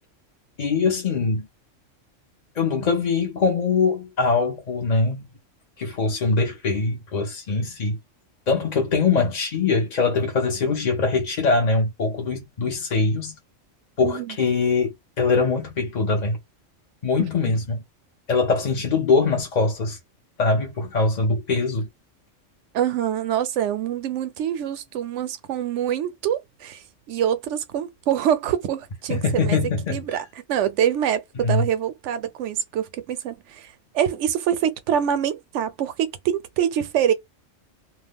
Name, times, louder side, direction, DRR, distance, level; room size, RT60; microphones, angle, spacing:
voice 1, 0.6-1.5 2.6-5.3 5.8-8.0 8.5-13.3 14.0-16.4 17.0-17.8 18.3-20.0 20.4-21.9 29.1-30.0 31.4-31.7, left 4 dB, 45° left, 0.6 m, -22 dB
voice 2, 14.0-14.4 17.2-17.3 22.7-26.8 27.1-29.6 29.9-37.1, right 9 dB, 75° right, 0.9 m, -25 dB
2.4 x 2.1 x 3.4 m
omnidirectional pair, 1.3 m